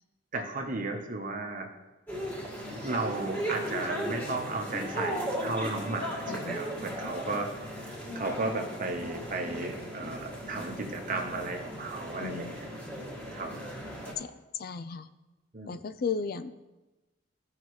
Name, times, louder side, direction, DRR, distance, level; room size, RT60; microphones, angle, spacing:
voice 1, 0.3-1.7 2.8-12.7 13.3-13.5 15.5-15.8, right 2 dB, 45° right, 4 dB, 1.0 m, -34 dB
sound 1, 2.1-14.1, equal, 10° left, 1.9 m, -37 dB
voice 2, 6.3-6.6 12.2-12.5 14.2-14.3 14.5-15.1 15.7-16.5, left 5 dB, 50° left, 12 dB, 0.4 m, -34 dB
15.0 x 5.6 x 3.2 m, 1.1 s
head